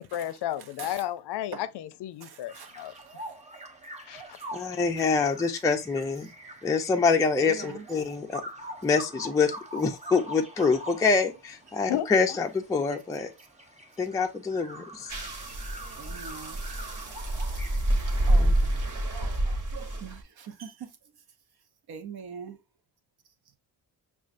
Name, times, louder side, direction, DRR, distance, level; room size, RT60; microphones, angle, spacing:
voice 1, 0.0-2.9 4.1-4.2 11.9-12.1, left 12 dB, 70° left, 0.5 m, -32 dB
voice 2, 0.6-1.0 1.5-1.7 2.2-3.3 4.4-4.5 7.4-7.9 10.0-10.1 11.8-11.9 16.0-16.6 18.3-20.9 21.9-22.6, right 6 dB, 65° right, 0.8 m, -43 dB
sound 1, 2.5-18.0, right 1 dB, 15° right, 0.8 m, -44 dB
voice 3, 4.5-6.3 6.6-8.4 8.8-13.3 14.0-15.2 18.4-18.5, left 4 dB, 10° left, 0.3 m, -26 dB
sound 2, 15.1-20.2, right 1 dB, 50° right, 1.2 m, -27 dB
6.1 x 2.4 x 2.5 m
cardioid pair, 120°, 42 cm